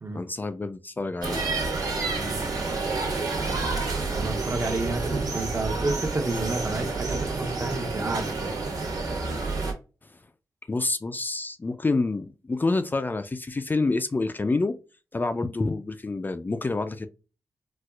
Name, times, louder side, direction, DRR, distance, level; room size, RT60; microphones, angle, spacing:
voice 1, 0.1-1.4 10.0-10.2 10.7-14.7 15.1-17.1, left 3 dB, 30° left, 0.4 m, -27 dB
sound 1, 1.2-9.7, right 3 dB, 70° right, 1.4 m, -29 dB
voice 2, 4.1-8.5, right 2 dB, 40° right, 0.8 m, -30 dB
4.2 x 2.3 x 2.3 m
cardioid pair, 75°, 7 cm